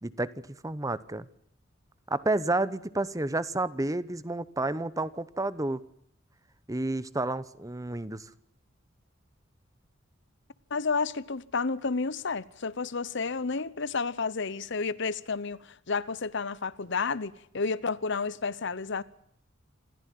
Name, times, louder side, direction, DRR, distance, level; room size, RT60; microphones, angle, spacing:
voice 1, 0.0-1.3 2.1-5.8 6.7-8.3, right 2 dB, 15° right, 0.9 m, -30 dB
voice 2, 10.7-19.0, left 4 dB, 65° left, 0.9 m, -31 dB
27.0 x 15.0 x 9.3 m
head